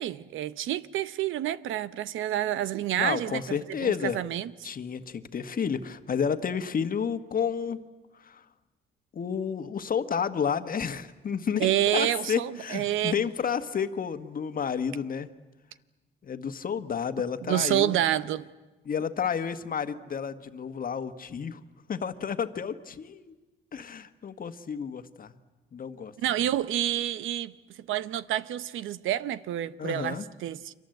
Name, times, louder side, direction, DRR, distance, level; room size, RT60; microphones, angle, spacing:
voice 1, 0.0-3.4 3.8-4.5 11.6-13.1 17.5-18.5 26.2-27.5 27.9-30.7, right 12 dB, 85° right, 0.9 m, -28 dB
voice 2, 3.0-4.2 4.6-7.8 8.2-8.4 9.1-15.3 16.2-18.0 18.8-21.6 21.9-23.4 23.7-25.3 25.7-26.1 26.4-26.5 29.8-30.2, left 7 dB, 45° left, 1.5 m, -31 dB
29.5 x 24.5 x 7.9 m
cardioid pair, 90°, 20 cm